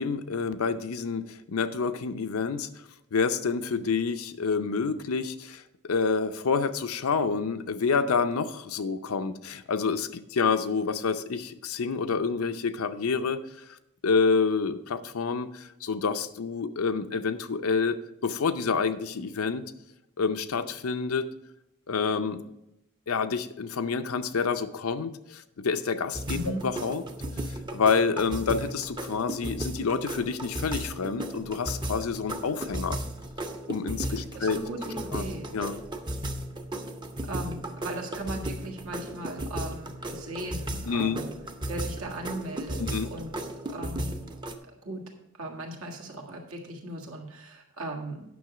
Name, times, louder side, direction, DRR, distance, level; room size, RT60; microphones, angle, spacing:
voice 1, 0.0-2.7 3.1-13.8 14.0-19.6 20.2-21.3 21.9-22.4 23.1-26.4 26.6-27.0 27.4-33.0 33.7-34.6 35.1-35.2 35.5-35.8 40.9-41.2 42.9-43.1, left 5 dB, 90° left, 10 dB, 0.6 m, -28 dB
sound 1, 26.1-44.6, right 1 dB, 20° right, 0.6 m, -35 dB
voice 2, 26.3-26.6 34.1-35.5 37.2-41.3 41.7-42.8 43.1-44.2 44.8-45.0 45.3-48.2, right 1 dB, 80° right, 1 dB, 1.8 m, -38 dB
9.4 x 6.2 x 4.9 m, 0.87 s
head